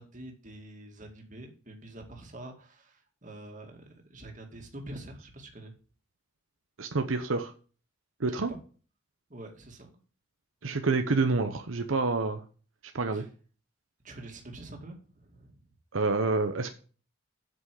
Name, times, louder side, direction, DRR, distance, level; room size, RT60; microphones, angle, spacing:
voice 1, 0.0-5.7 8.4-8.6 9.3-9.9 13.1-13.3 14.0-15.6, right 1 dB, 40° right, 3 dB, 2.2 m, -46 dB
voice 2, 6.8-7.5 8.2-8.5 10.6-12.4 12.9-13.2 15.9-16.7, right 3 dB, 80° right, 7 dB, 0.9 m, -28 dB
8.0 x 6.2 x 7.6 m, 0.39 s
head